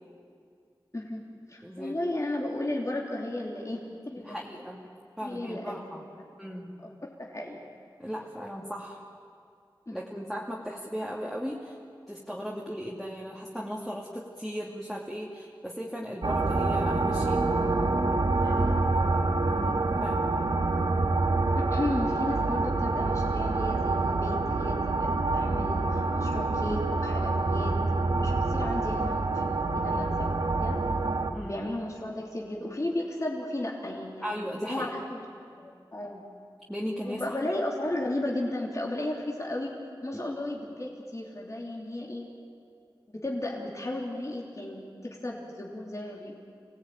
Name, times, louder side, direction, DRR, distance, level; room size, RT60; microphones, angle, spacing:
voice 1, 0.9-4.4 5.2-5.9 6.8-7.6 9.9-10.0 18.4-19.0 21.5-27.8 28.2-30.8 31.4-34.3 34.7-35.2 35.6-36.2 37.0-42.3 43.1-46.4, left 1 dB, 40° left, -3 dB, 3.2 m, -34 dB
voice 2, 1.6-1.9 4.2-4.8 5.2-6.0 6.4-6.8 8.0-9.0 9.9-11.8 12.1-17.4 19.5-20.4 31.3-31.6 34.2-34.9 36.7-37.3, equal, ahead, -3 dB, 2.5 m, -37 dB
sound 1, 16.2-31.3, right 3 dB, 70° right, 1.8 m, -26 dB
26.5 x 18.0 x 9.2 m, 2.4 s
wide cardioid pair, 65°, 8 cm